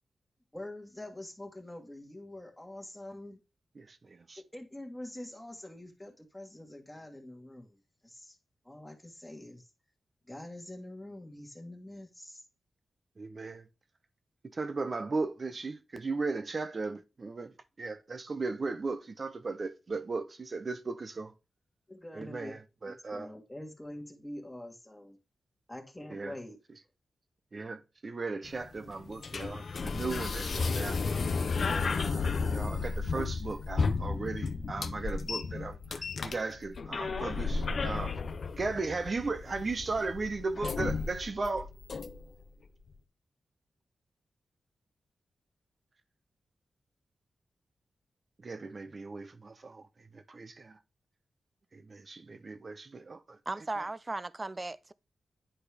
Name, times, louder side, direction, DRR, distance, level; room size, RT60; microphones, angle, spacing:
voice 1, 0.5-3.4 4.5-8.4 8.6-9.7 10.3-12.4 21.9-22.5 22.8-25.2 25.7-26.6, left 1 dB, 10° left, 1.4 m, -45 dB
voice 2, 3.8-4.4 13.2-13.7 14.4-21.3 22.1-23.3 26.1-26.3 27.5-31.0 31.7-38.2 38.6-41.7 48.4-50.8 51.7-53.4 53.8-53.9, right 3 dB, 45° right, 0.7 m, -37 dB
sound 1, 28.4-42.4, left 4 dB, 55° left, 0.6 m, -33 dB
voice 3, 53.5-54.9, right 2 dB, 30° right, 0.3 m, -36 dB
9.9 x 4.4 x 3.4 m
cardioid pair, 85°, 0 cm